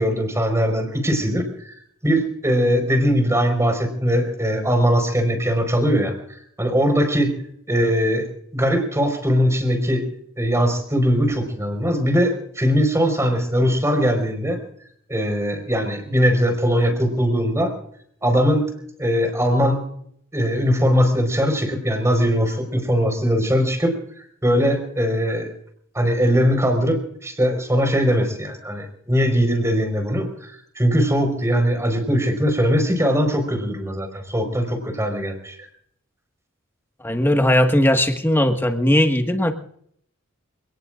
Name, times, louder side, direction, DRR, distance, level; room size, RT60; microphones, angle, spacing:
voice 1, 0.0-1.7 2.0-6.1 6.6-7.4 7.7-8.3 8.5-10.0 10.4-14.6 15.1-17.7 18.2-18.7 19.0-19.8 20.3-23.9 24.4-25.5 25.9-35.6, equal, 15° right, 6 dB, 4.5 m, -20 dB
voice 2, 37.0-39.5, left 1 dB, 10° left, 5 dB, 1.6 m, -18 dB
28.5 x 18.5 x 2.5 m, 0.67 s
head